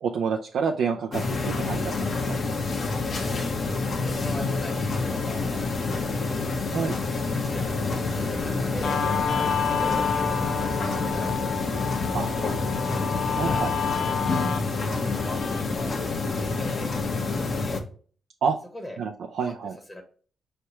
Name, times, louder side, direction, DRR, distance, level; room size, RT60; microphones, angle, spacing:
voice 1, 0.0-1.9 2.3-2.4 6.7-6.9 12.1-12.3 13.3-13.7 18.4-18.6 19.0-19.7, right 6 dB, 75° right, 2 dB, 0.4 m, -28 dB
sound 1, 1.1-17.8, left 3 dB, 55° left, 0.9 m, -28 dB
voice 2, 3.6-6.4 7.0-9.0 9.4-11.4 12.1-13.6 14.7-17.8 18.7-19.0 19.4-19.5 19.9-20.0, left 1 dB, 20° left, 4 dB, 1.0 m, -41 dB
Bowed string instrument, 7.6-12.8, equal, ahead, 0.6 m, -39 dB
Guitar, 8.8-15.8, left 7 dB, 80° left, 0.5 m, -30 dB
4.5 x 3.3 x 2.9 m, 0.42 s
cardioid pair, 75°, 0 cm